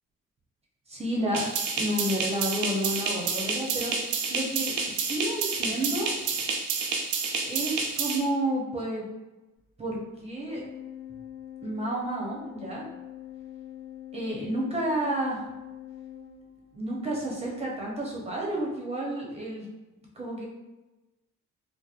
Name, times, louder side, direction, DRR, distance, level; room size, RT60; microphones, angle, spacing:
voice 1, 0.9-1.5 1.8-3.9 4.3-6.1 7.5-9.1 9.8-10.6 11.6-12.8 14.1-15.4 16.7-19.7 20.2-20.5, right 1 dB, 20° right, -3 dB, 0.8 m, -30 dB
sound 1, 1.3-8.2, right 5 dB, 85° right, 0.5 m, -29 dB
Organ, 10.5-17.0, left 11 dB, 30° left, 0.6 m, -43 dB
3.0 x 2.1 x 2.4 m, 1.1 s
cardioid pair, 90°, 30 cm